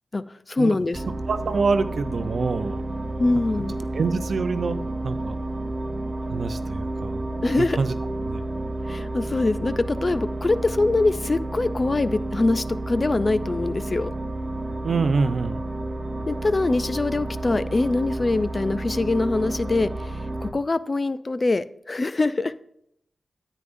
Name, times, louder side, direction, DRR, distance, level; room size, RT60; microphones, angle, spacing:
voice 1, 0.1-1.0 3.2-3.7 7.4-7.8 8.8-14.1 16.3-22.5, left 2 dB, 35° left, 14 dB, 0.4 m, -23 dB
sound 1, 0.9-20.5, right 2 dB, 30° right, 0.8 m, -31 dB
voice 2, 1.3-2.8 3.9-5.3 6.2-7.2 7.6-7.9 8.3-8.4 14.8-15.6, right 4 dB, 65° right, 10 dB, 0.6 m, -25 dB
9.7 x 9.3 x 2.6 m, 0.75 s
wide cardioid pair, 95°, 0 cm